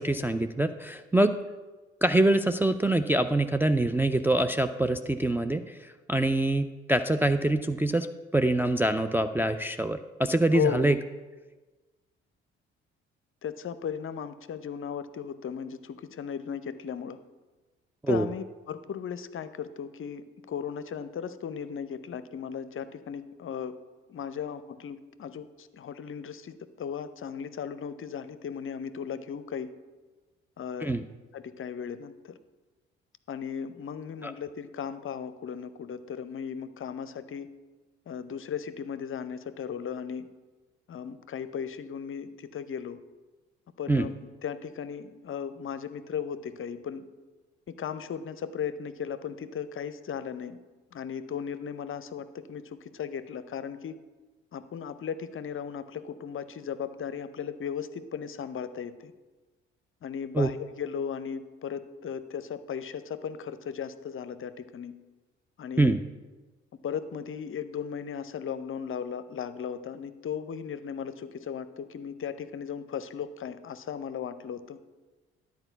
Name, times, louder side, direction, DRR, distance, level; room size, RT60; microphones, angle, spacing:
voice 1, 0.0-1.4 2.0-8.1 8.3-11.0 18.0-18.3 30.8-31.0 34.2-34.3 43.9-44.1 60.3-60.5 65.8-66.0, right 1 dB, 5° right, 7 dB, 0.4 m, -25 dB
voice 2, 13.4-17.2 18.1-23.8 24.1-29.7 30.6-30.9 31.3-32.4 33.3-37.5 38.1-40.3 40.9-43.0 43.8-47.1 47.7-50.6 50.9-54.0 54.5-59.1 60.0-64.9 65.6-66.0 66.8-74.8, left 7 dB, 40° left, 13 dB, 0.6 m, -36 dB
11.0 x 4.6 x 6.9 m, 1.2 s
figure-of-eight pair, 45°, 33 cm